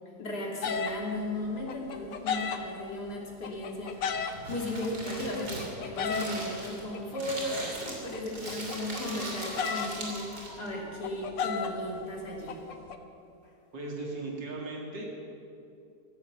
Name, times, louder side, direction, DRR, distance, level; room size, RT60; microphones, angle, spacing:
voice 1, 0.2-12.6, left 1 dB, 65° left, -2 dB, 3.2 m, -36 dB
sound 1, 0.6-1.0 1.3-2.9 3.4-4.3 4.8-6.5 6.9-8.2 8.5-10.2 10.5-10.6 11.0-13.0, left 6 dB, 90° left, 1.7 m, -34 dB
Crumpling crinkling, 3.9-10.7, right 2 dB, 60° right, 3.5 m, -40 dB
sound 2, 9.0-12.8, equal, 20° left, 2.9 m, -50 dB
voice 2, 13.7-15.0, right 2 dB, 85° right, -1 dB, 2.9 m, -37 dB
15.5 x 14.5 x 6.0 m, 2.6 s
omnidirectional pair, 1.9 m